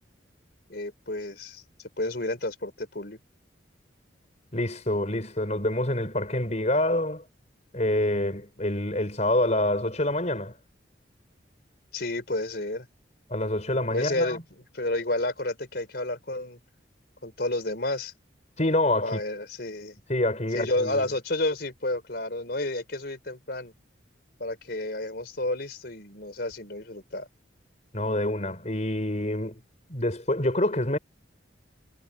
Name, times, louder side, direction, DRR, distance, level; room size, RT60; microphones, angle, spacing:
voice 1, 0.7-1.6 2.0-3.2 11.9-12.9 13.9-14.4 14.7-16.6 17.2-18.1 19.0-20.0 20.5-23.7 24.4-27.3, left 2 dB, 55° left, 4.7 m, -30 dB
voice 2, 4.5-7.2 7.7-10.5 13.3-14.4 18.6-19.2 20.1-21.1 27.9-29.6 29.9-31.0, left 1 dB, 40° left, 4.8 m, -26 dB
head